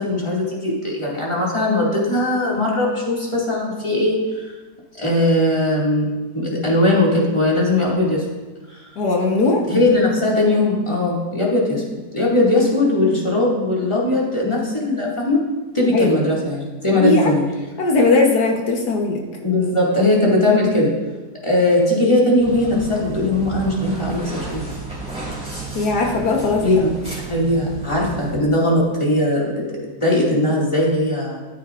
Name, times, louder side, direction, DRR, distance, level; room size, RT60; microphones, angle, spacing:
voice 1, 0.0-4.5 4.9-8.2 8.7-8.9 9.7-11.8 12.1-15.4 15.7-17.4 19.4-20.9 21.4-24.6 26.6-26.9 27.3-31.4, left 1 dB, 15° left, -4 dB, 2.2 m, -19 dB
voice 2, 9.0-9.6 15.9-16.3 17.0-17.3 17.8-19.2 25.7-26.9, left 3 dB, 70° left, 1 dB, 1.6 m, -18 dB
sound 1, 22.4-28.4, right 3 dB, 5° right, 3.4 m, -32 dB
14.0 x 9.2 x 2.5 m, 1.2 s
omnidirectional pair, 1.8 m